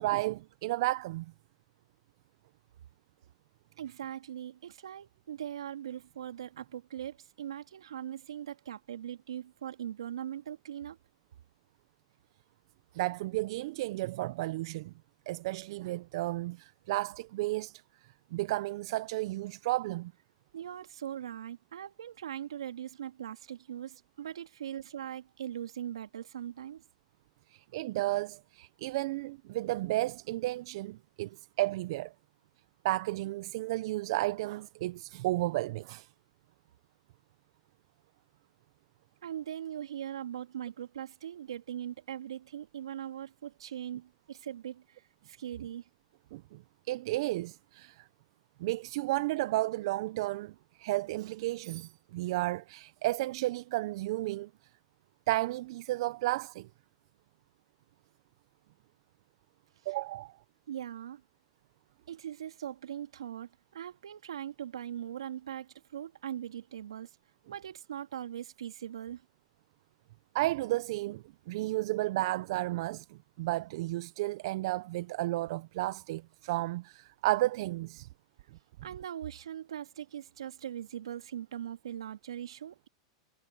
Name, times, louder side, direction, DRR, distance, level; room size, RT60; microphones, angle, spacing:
voice 1, 0.0-1.3 12.9-14.9 15.3-17.8 18.3-20.1 27.5-32.1 32.8-36.1 46.3-46.6 46.9-48.1 48.6-54.5 55.3-56.7 59.9-60.3 70.3-78.1, right 18 dB, 65° right, 0.8 m, -33 dB
voice 2, 3.8-11.0 20.5-26.8 39.2-45.9 60.7-61.2 62.1-67.1 67.5-69.2 78.8-82.9, right 10 dB, 80° right, 2.8 m, -40 dB
hypercardioid pair, 105°, 3 cm